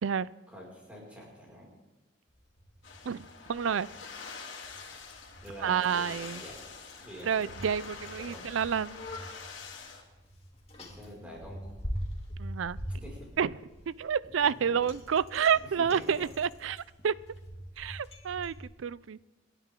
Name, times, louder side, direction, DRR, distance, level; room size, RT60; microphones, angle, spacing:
voice 1, 0.5-1.7 5.4-6.6 7.0-7.5 7.9-8.4 10.9-11.8 13.0-13.2 14.5-14.8 15.6-16.2, equal, 5° right, -4 dB, 5.6 m, -47 dB
Bicycle, 2.3-18.6, equal, 30° left, 3.0 m, -44 dB
sound 1, 2.8-10.0, left 5 dB, 75° left, 2.8 m, -46 dB
voice 2, 3.1-3.9 5.6-6.4 7.2-9.1 12.4-12.8 13.4-13.5 13.9-17.1 17.8-19.2, right 7 dB, 85° right, 20 dB, 0.4 m, -29 dB
27.5 x 11.5 x 3.8 m, 1.1 s
head